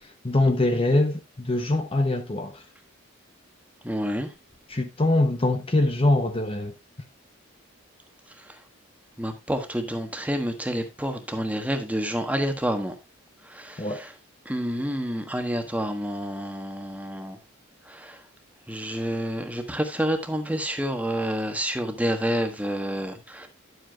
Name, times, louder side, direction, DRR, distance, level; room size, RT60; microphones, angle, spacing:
voice 1, 0.3-2.6 4.7-6.7 13.8-14.0, left 2 dB, 25° left, 0.8 m, -23 dB
voice 2, 3.8-4.3 8.4-8.6 9.2-13.0 13.4-14.1 14.4-17.4 17.9-18.2 18.7-23.5, equal, 5° right, 1.3 m, -29 dB
11.0 x 7.9 x 2.3 m
head